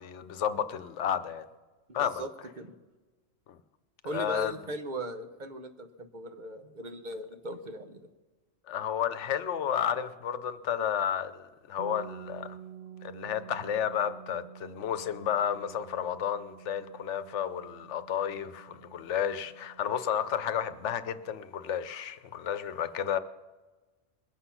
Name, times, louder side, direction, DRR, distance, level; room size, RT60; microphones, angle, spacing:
voice 1, 0.0-1.5 1.9-2.2 3.5-3.6 4.1-4.6 8.7-12.6 13.0-23.2, left 9 dB, 85° left, 1.0 m, -32 dB
voice 2, 1.9-2.3 2.6-2.7 4.0-8.0, right 1 dB, 45° right, 0.9 m, -39 dB
sound 1, 11.8-21.5, right 9 dB, 70° right, 1.0 m, -50 dB
21.5 x 7.9 x 5.7 m
omnidirectional pair, 1.2 m